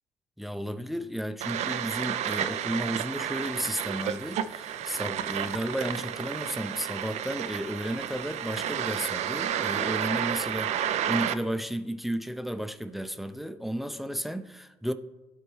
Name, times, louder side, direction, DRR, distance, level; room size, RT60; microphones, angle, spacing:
voice 1, 0.4-10.8 11.1-14.9, equal, ahead, 0.5 m, -33 dB
sound 1, 1.4-11.3, right 10 dB, 65° right, 0.4 m, -31 dB
11.5 x 4.3 x 3.1 m
supercardioid pair, 75°, 12 cm